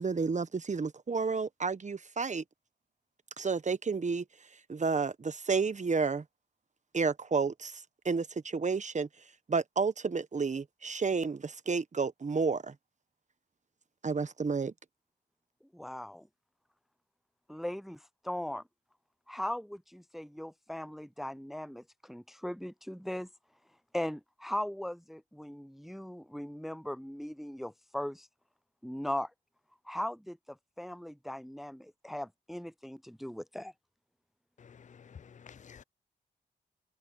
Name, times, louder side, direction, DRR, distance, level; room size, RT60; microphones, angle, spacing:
voice 1, 0.0-2.4 3.4-4.2 4.7-6.2 6.9-9.1 9.5-12.7 14.0-14.7, right 4 dB, 40° right, 1.3 m, -31 dB
voice 2, 15.7-16.3 17.5-18.6 19.3-23.3 23.9-28.3 28.8-29.3 29.9-33.7, left 1 dB, ahead, 0.6 m, -39 dB
voice 3, 34.6-35.8, left 7 dB, 40° left, 0.6 m, -52 dB
supercardioid pair, 45°, 19 cm